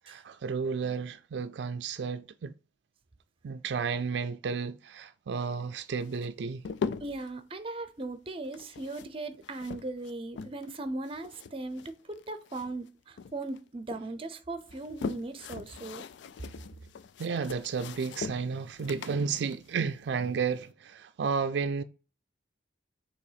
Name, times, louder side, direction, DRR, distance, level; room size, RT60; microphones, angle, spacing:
voice 1, 0.1-2.5 3.4-6.6 17.2-21.8, right 5 dB, 75° right, 0.4 m, -32 dB
sound 1, 6.0-7.3 8.4-10.8 11.1-12.9 13.2-14.0 14.6-20.6, left 5 dB, 85° left, 0.4 m, -41 dB
voice 2, 7.0-16.0, right 2 dB, 30° right, 0.6 m, -38 dB
6.8 x 3.0 x 4.9 m
head